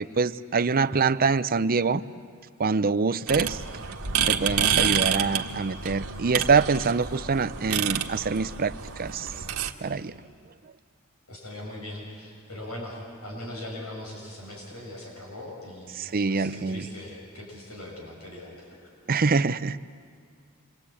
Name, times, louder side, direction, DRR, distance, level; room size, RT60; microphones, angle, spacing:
voice 1, 0.0-2.0 2.6-3.6 4.3-9.3 9.8-10.1 16.0-16.9 19.1-19.8, right 4 dB, 45° right, 14 dB, 0.6 m, -25 dB
sound 1, 3.3-9.7, right 8 dB, 85° right, 1.6 m, -28 dB
voice 2, 11.3-18.9, left 1 dB, 90° left, -1 dB, 6.4 m, -40 dB
27.0 x 24.5 x 8.5 m, 2.3 s
head